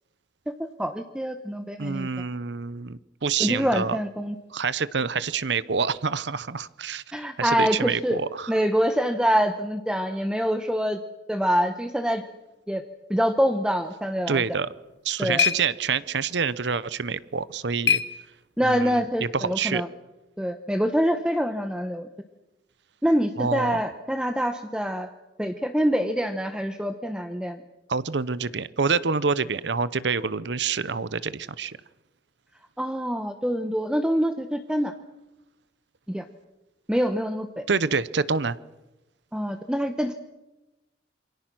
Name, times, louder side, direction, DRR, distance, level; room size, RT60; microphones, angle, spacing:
voice 1, 0.8-2.1 3.4-4.4 7.1-8.2 8.5-11.0 11.3-12.2 12.7-12.8 13.1-14.4 15.2-15.4 18.6-19.9 20.4-22.1 23.0-25.1 25.4-27.6 32.8-34.9 36.1-36.2 36.9-37.6 39.3-40.1, equal, 5° right, 7 dB, 1.0 m, -25 dB
voice 2, 1.8-4.0 4.5-8.6 14.3-14.7 15.0-18.0 18.6-19.8 23.4-23.8 27.9-31.8 37.7-38.6, right 5 dB, 70° right, 17 dB, 0.8 m, -27 dB
sound 1, 14.6-18.9, left 7 dB, 65° left, 1.5 m, -30 dB
28.0 x 24.5 x 6.2 m, 1.0 s
head